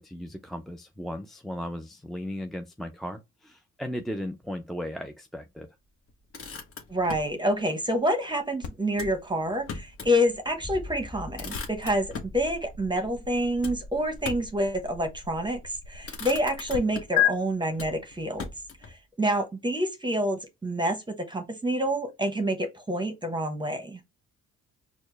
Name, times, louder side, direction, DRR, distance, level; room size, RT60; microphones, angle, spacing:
voice 1, 0.0-5.7, equal, ahead, 0.4 m, -36 dB
Motor vehicle (road), 6.1-7.4 8.9-10.2 10.6-10.7 11.0-12.4 13.6-14.6 15.4-15.7 16.0-17.3 17.7-19.0, left 4 dB, 45° left, 1.1 m, -40 dB
voice 2, 6.9-18.5 18.8-24.0, equal, 15° right, 0.9 m, -28 dB
sound 1, 8.6-16.8 17.2-17.3, left 12 dB, 75° left, 0.8 m, -35 dB
sound 2, 10.2-13.0, left 2 dB, 30° left, 1.8 m, -44 dB
4.3 x 2.1 x 3.2 m
cardioid pair, 90°, 30 cm